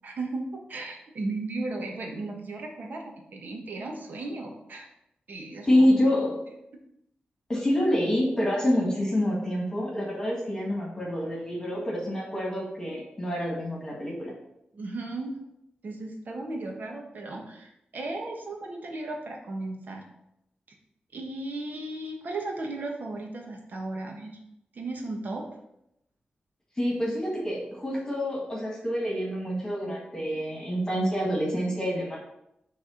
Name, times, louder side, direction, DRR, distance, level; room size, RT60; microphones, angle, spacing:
voice 1, 0.0-4.9 5.3-6.1 14.7-15.4 15.8-20.0 20.7-20.8 21.1-24.4 24.7-25.4, right 2 dB, 60° right, 1 dB, 1.2 m, -35 dB
voice 2, 5.6-6.4 7.5-14.3 26.7-32.2, equal, 20° left, -3 dB, 1.7 m, -27 dB
6.3 x 3.5 x 5.7 m, 0.82 s
wide cardioid pair, 135°, 3 cm